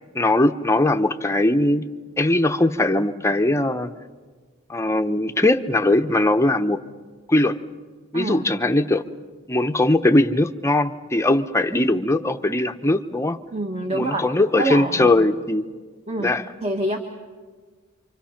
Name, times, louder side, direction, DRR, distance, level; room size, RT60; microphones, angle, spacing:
voice 1, 0.1-1.9 2.2-3.9 4.7-6.8 7.3-7.6 8.1-9.0 9.5-13.4 13.9-15.7 16.2-16.4, left 2 dB, 15° left, 8 dB, 0.8 m, -20 dB
voice 2, 8.1-8.5 13.5-14.2 14.6-15.2 16.1-16.3 16.6-17.0, right 1 dB, 30° right, 3 dB, 1.6 m, -26 dB
28.5 x 25.5 x 5.8 m, 1.5 s
head